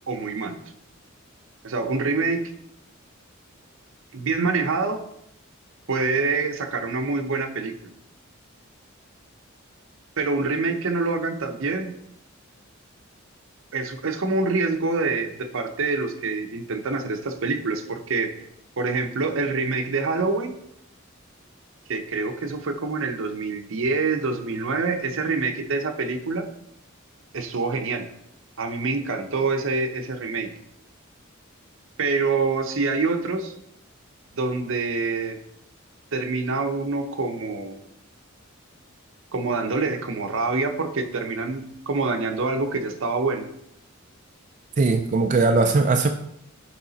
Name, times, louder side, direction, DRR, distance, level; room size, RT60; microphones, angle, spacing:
voice 1, 0.1-0.6 1.6-2.4 4.1-5.0 5.9-7.9 10.2-11.9 13.7-18.3 18.8-20.5 21.9-26.5 27.3-28.1 28.6-30.5 32.0-33.5 34.4-35.4 36.1-37.9 39.3-43.5, right 3 dB, 65° right, 6 dB, 0.8 m, -26 dB
voice 2, 44.8-46.1, right 3 dB, 40° right, 5 dB, 0.4 m, -19 dB
7.0 x 4.9 x 4.0 m, 0.76 s
head